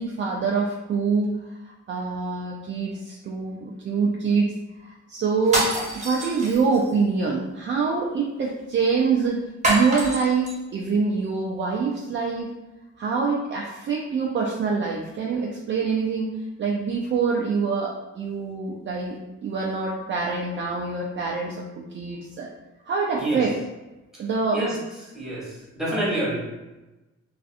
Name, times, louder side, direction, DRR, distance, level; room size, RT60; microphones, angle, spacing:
voice 1, 0.0-4.5 4.8-5.7 6.0-12.5 13.0-16.3 16.6-22.5 22.9-23.5 24.2-24.6, right 5 dB, 40° right, -3 dB, 0.4 m, -25 dB
sound 1, 5.4-6.9 9.6-10.6, right 1 dB, 25° right, 1.0 m, -26 dB
voice 2, 25.1-26.4, right 1 dB, ahead, -7 dB, 1.2 m, -27 dB
2.5 x 2.4 x 2.4 m, 1.1 s
cardioid pair, 90°, 30 cm